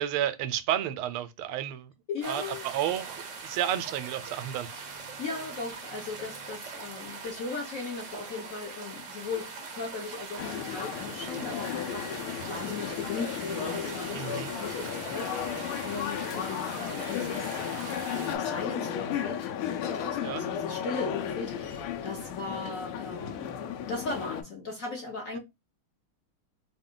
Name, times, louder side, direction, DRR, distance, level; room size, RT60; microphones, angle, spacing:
voice 1, 0.0-1.9 2.3-5.1 14.1-14.5 20.2-20.4, right 11 dB, 85° right, 1.5 m, -32 dB
voice 2, 2.1-2.7 5.2-18.0 18.4-23.5 23.9-25.4, left 4 dB, 55° left, 1.0 m, -38 dB
sound 1, 2.2-18.4, right 4 dB, 65° right, 0.7 m, -42 dB
sound 2, 10.4-24.4, left 8 dB, 90° left, 1.5 m, -34 dB
3.6 x 2.3 x 3.7 m
omnidirectional pair, 2.3 m